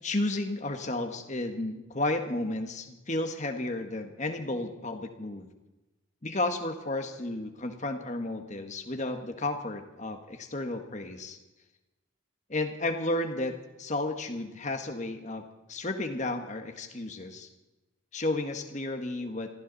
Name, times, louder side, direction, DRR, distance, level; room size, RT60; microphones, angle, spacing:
voice 1, 0.0-5.5 6.2-11.4 12.5-17.5 18.1-19.5, left 2 dB, 35° left, 5 dB, 1.5 m, -32 dB
22.5 x 15.0 x 4.1 m, 1.1 s
head